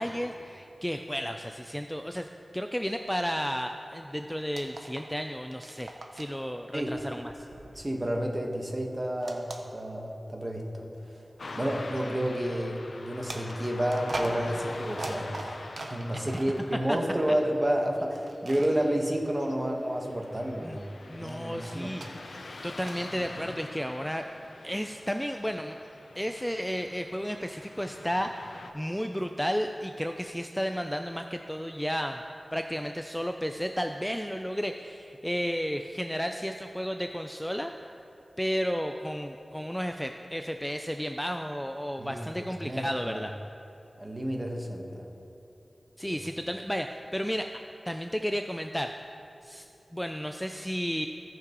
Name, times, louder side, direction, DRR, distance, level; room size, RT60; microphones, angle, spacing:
voice 1, 0.0-7.3 16.1-16.3 16.9-17.0 20.6-20.8 21.1-22.0 22.6-24.2 24.6-25.8 26.2-32.2 32.5-37.7 38.4-43.3 46.0-47.5 47.9-48.9 49.4-49.7 49.9-51.1, equal, 5° left, 5 dB, 0.3 m, -33 dB
sound 1, 4.4-5.2 5.5-6.4 6.9-8.4 9.2-10.3 10.9-11.1 13.3-16.6 18.2-18.8 21.3-23.1, right 2 dB, 70° right, 0.7 m, -41 dB
voice 2, 7.7-10.8 11.5-21.9 42.0-43.2 44.0-45.1 46.0-46.2, equal, 25° right, 1 dB, 1.2 m, -30 dB
Car passing by / Traffic noise roadway noise, 11.4-28.7, left 3 dB, 85° left, 0.5 m, -45 dB
16.5 x 6.0 x 3.0 m, 2.9 s
wide cardioid pair, 65°, 0 cm